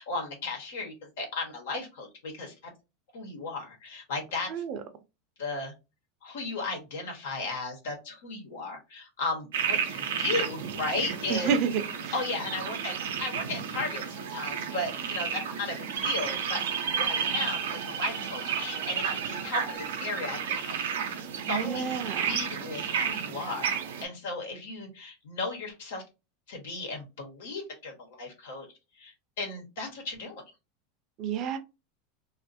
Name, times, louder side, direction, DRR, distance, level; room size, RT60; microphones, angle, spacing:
voice 1, 0.0-2.5 3.1-4.6 5.4-5.7 6.2-11.5 12.1-20.8 21.5-26.0 26.5-28.7 29.0-30.4, left 3 dB, 80° left, 1 dB, 1.2 m, -35 dB
voice 2, 4.5-4.8 11.3-12.1 21.5-22.3 31.2-31.6, right 7 dB, 45° right, 8 dB, 0.6 m, -29 dB
sound 1, 9.5-24.0, right 7 dB, 90° right, 0.6 m, -32 dB
2.6 x 2.5 x 2.6 m, 0.27 s
supercardioid pair, 125°, 0 cm